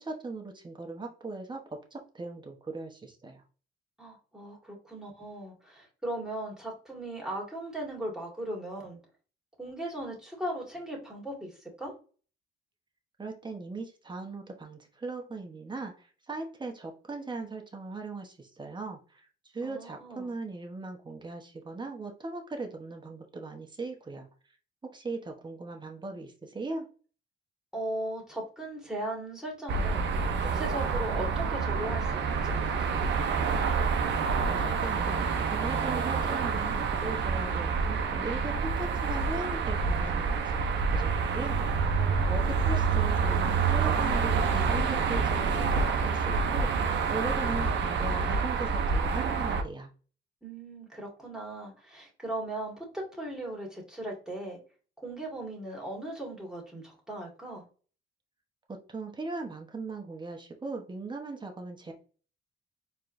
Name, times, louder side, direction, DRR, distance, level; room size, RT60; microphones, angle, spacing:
voice 1, 0.0-3.4 13.2-19.3 19.5-24.3 24.8-26.9 34.5-41.6 42.3-49.9 58.7-61.9, right 3 dB, 25° right, 3 dB, 1.1 m, -39 dB
voice 2, 4.0-9.0 9.6-11.9 19.6-20.3 27.7-33.2 42.0-42.5 50.4-54.6 55.0-57.6, right 1 dB, 5° right, -2 dB, 1.9 m, -38 dB
sound 1, 29.7-49.6, right 5 dB, 65° right, 0.7 m, -27 dB
4.3 x 3.2 x 2.6 m, 0.38 s
cardioid pair, 90°, 20 cm